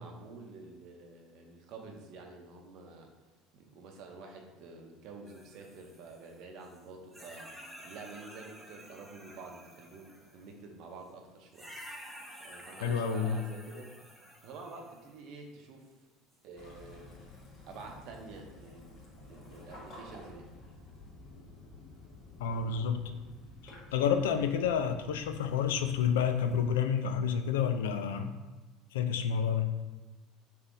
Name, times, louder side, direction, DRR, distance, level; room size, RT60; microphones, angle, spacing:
voice 1, 0.0-3.1 3.5-11.7 12.4-13.9 14.4-15.9 16.4-17.2 17.7-20.5, right 3 dB, 65° right, 2 dB, 0.7 m, -48 dB
sound 1, 5.3-6.8 7.1-10.5 11.5-15.2 16.3-16.4 19.4-19.6, equal, 5° right, 0.7 m, -51 dB
voice 2, 12.8-13.4 22.4-23.0 23.6-28.3 28.9-29.7, left 7 dB, 85° left, 8 dB, 0.3 m, -29 dB
Waves surf / Splash splatter / Trickle dribble, 16.6-26.7, left 2 dB, 50° left, 1.3 m, -51 dB
3.6 x 2.7 x 3.8 m, 1.2 s
hypercardioid pair, 85°, 0 cm